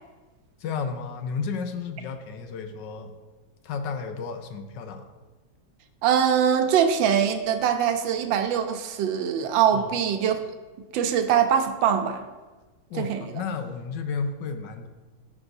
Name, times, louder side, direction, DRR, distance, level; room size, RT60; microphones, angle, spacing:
voice 1, 0.6-3.1 3.6-5.0 9.7-10.0 12.9-14.9, left 5 dB, 75° left, 7 dB, 1.3 m, -32 dB
voice 2, 6.0-10.4 10.9-12.2 13.0-13.2, right 8 dB, 90° right, 7 dB, 1.4 m, -22 dB
12.5 x 6.2 x 2.6 m, 1.2 s
omnidirectional pair, 2.0 m